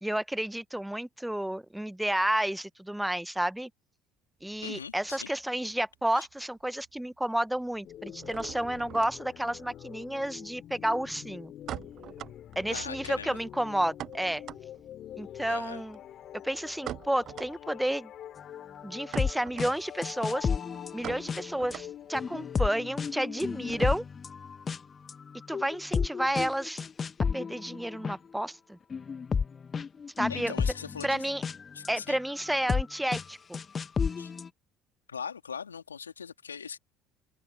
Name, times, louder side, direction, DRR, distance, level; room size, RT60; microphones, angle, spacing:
voice 1, 0.0-3.7 4.4-11.5 12.6-14.4 15.2-16.0 16.4-18.1 18.8-20.5 20.9-24.0 25.5-26.8 27.3-28.8 30.2-30.5 31.0-31.4 31.9-33.6, right 1 dB, 5° right, 0.9 m, -31 dB
sound 1, 4.4-6.0 6.3-7.0 7.2-24.3, right 11 dB, 50° right, 1.0 m, -46 dB
voice 2, 4.6-5.3 6.2-6.3 12.7-13.4 15.5-15.8 30.3-31.2 31.7-32.2 34.2-34.3 35.1-36.8, left 6 dB, 85° left, 3.2 m, -40 dB
sound 2, 7.8-24.0, left 11 dB, 50° left, 3.4 m, -46 dB
sound 3, 18.9-19.3 19.6-19.7 20.0-21.7 22.1-24.8 25.1-28.1 28.9-31.9 32.5-32.8 33.1-33.2 33.5-34.5, left 6 dB, 35° left, 0.9 m, -32 dB
figure-of-eight pair, 55°, 0 cm